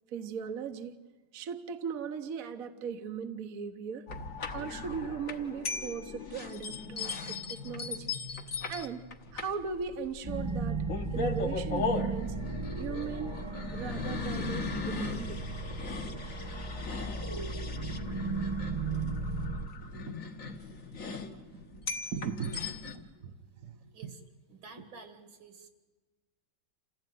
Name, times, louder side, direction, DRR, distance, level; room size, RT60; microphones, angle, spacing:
voice 1, 0.1-0.9 1.3-4.1 4.5-8.1 8.7-9.0 9.3-10.8 11.1-12.4 12.8-13.4 13.7-15.5 17.4-17.9 18.6-18.7 19.8-20.2 20.9-24.1, right 6 dB, 50° right, 6 dB, 1.3 m, -39 dB
sound 1, 4.1-23.0, left 4 dB, 45° left, 1.7 m, -38 dB
sound 2, 10.2-19.7, right 3 dB, 15° right, 1.2 m, -35 dB
voice 2, 24.5-25.7, right 4 dB, 75° right, 7 dB, 2.9 m, -51 dB
28.0 x 16.0 x 9.4 m, 1.3 s
omnidirectional pair, 2.2 m